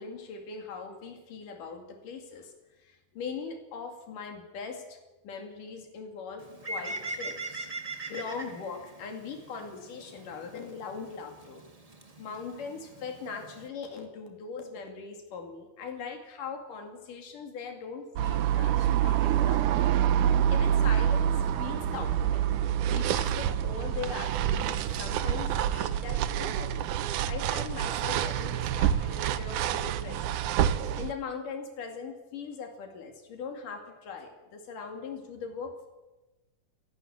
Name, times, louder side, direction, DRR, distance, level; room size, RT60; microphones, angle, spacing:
voice 1, 0.0-5.0 5.2-11.6 12.2-26.9 27.3-30.4 31.0-35.9, left 5 dB, 80° left, 3 dB, 4.1 m, -40 dB
Bird, 6.4-13.7, right 2 dB, 20° right, 1.0 m, -42 dB
sound 1, 18.2-31.1, right 10 dB, 75° right, 2.3 m, -27 dB
28.0 x 11.5 x 8.7 m, 1.1 s
omnidirectional pair, 3.7 m